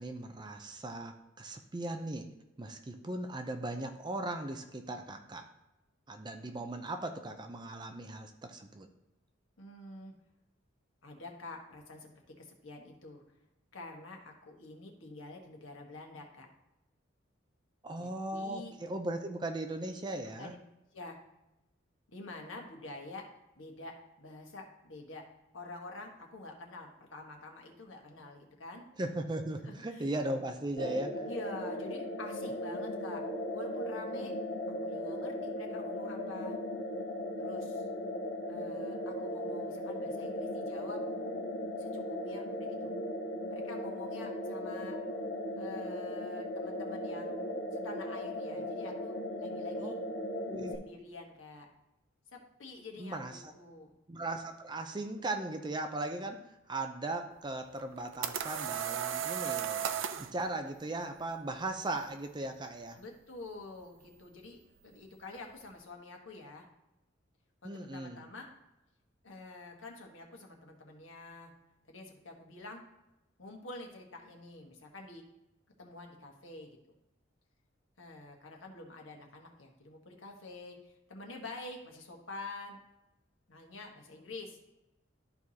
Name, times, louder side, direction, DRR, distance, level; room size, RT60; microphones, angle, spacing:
voice 1, 0.0-2.3 2.6-5.5 6.1-8.9 17.8-20.5 29.0-31.3 49.8-49.9 50.5-50.8 53.0-53.5 54.1-56.4 56.7-63.0 67.6-68.2, right 2 dB, 25° right, 5 dB, 0.5 m, -38 dB
voice 2, 9.6-10.1 11.0-13.2 13.7-16.5 18.0-18.7 20.4-20.6 20.9-21.2 22.1-23.3 23.5-25.3 25.5-28.8 29.6-30.1 31.2-33.2 33.5-34.3 34.7-36.6 37.4-37.9 38.5-41.0 41.8-42.9 43.5-45.0 45.6-47.4 47.7-50.0 50.7-51.7 52.3-53.9 63.0-66.7 67.6-68.5 69.2-71.5 71.8-72.8 73.4-75.2 75.8-76.8 78.0-82.8 83.5-84.6, left 2 dB, 90° left, 1 dB, 1.4 m, -47 dB
sound 1, 30.8-50.7, left 1 dB, 65° left, 1.1 m, -37 dB
sound 2, 57.8-60.3, right 9 dB, 80° right, 0.5 m, -35 dB
13.0 x 4.6 x 2.8 m, 0.94 s
head